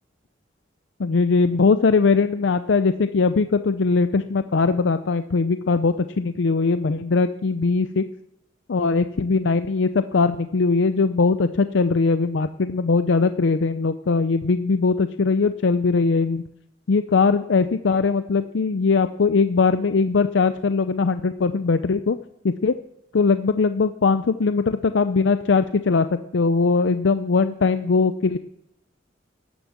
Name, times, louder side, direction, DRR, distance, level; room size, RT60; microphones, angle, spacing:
voice 1, 1.0-8.0 8.7-16.4 16.9-22.2 22.4-22.7 23.1-28.4, left 4 dB, 70° left, 11 dB, 0.5 m, -20 dB
12.5 x 10.0 x 7.2 m, 0.79 s
head